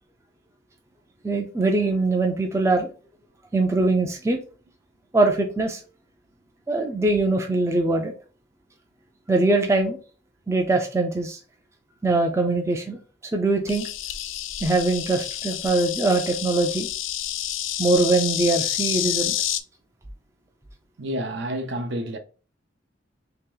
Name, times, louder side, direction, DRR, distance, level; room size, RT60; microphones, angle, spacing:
voice 1, 1.2-2.9 3.5-4.4 5.1-5.8 6.7-8.1 9.3-10.0 10.5-11.4 12.0-13.0 13.3-13.9 14.6-16.9 17.8-19.3, right 2 dB, 15° right, 0.4 m, -22 dB
Insect, 13.7-19.6, left 12 dB, 75° left, 0.4 m, -29 dB
voice 2, 21.0-22.2, right 1 dB, 60° right, 0.6 m, -29 dB
2.9 x 2.9 x 3.7 m
head